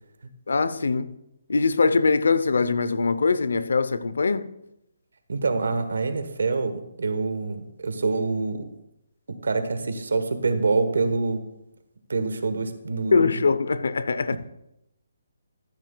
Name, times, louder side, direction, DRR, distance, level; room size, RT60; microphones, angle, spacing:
voice 1, 0.5-1.1 1.5-4.5 13.1-14.4, left 4 dB, 75° left, 0.7 m, -22 dB
voice 2, 5.3-8.7 9.3-11.4 12.1-13.4, right 3 dB, 80° right, 1.2 m, -26 dB
13.5 x 10.5 x 2.3 m
hypercardioid pair, 175°, 0 cm